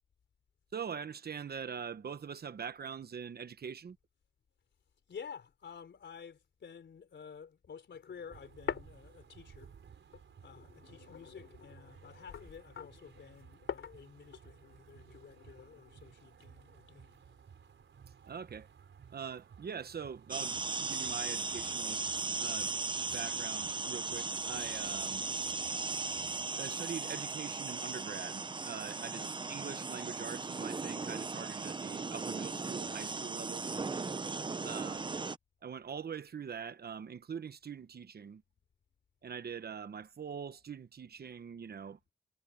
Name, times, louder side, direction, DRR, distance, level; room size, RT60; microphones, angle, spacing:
voice 1, 0.7-4.0 18.3-18.7 19.1-22.0 22.4-25.2 26.5-33.7 34.6-35.1 35.6-38.4 39.2-42.0, right 7 dB, 50° right, 1.0 m, -43 dB
voice 2, 5.1-9.7 10.4-17.4 29.1-29.3, left 6 dB, 65° left, 3.9 m, -51 dB
sound 1, 7.9-9.7 10.1-16.0, left 8 dB, 85° left, 3.0 m, -46 dB
sound 2, 8.3-26.5, right 7 dB, 70° right, 4.7 m, -58 dB
sound 3, 20.3-35.4, right 4 dB, 25° right, 0.7 m, -37 dB
wide cardioid pair, 150°, 20 cm